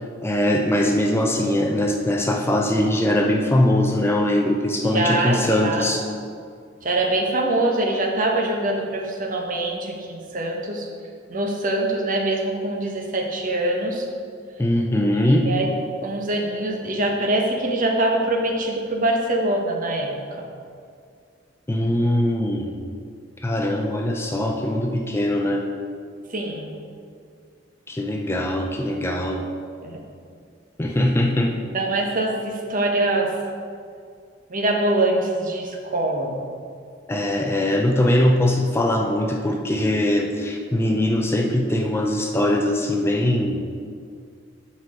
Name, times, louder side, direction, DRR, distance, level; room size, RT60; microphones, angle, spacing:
voice 1, 0.2-6.0 14.6-15.5 21.7-22.8 23.4-25.7 27.9-29.4 30.8-31.6 37.1-43.7, left 1 dB, 15° left, 2 dB, 0.4 m, -21 dB
voice 2, 4.9-5.9 6.8-10.9 11.3-14.0 15.2-15.7 16.0-20.1 26.3-26.7 29.8-30.0 31.7-33.3 34.5-36.3, right 2 dB, 45° right, 1 dB, 1.0 m, -23 dB
8.5 x 4.6 x 4.7 m, 2.2 s
head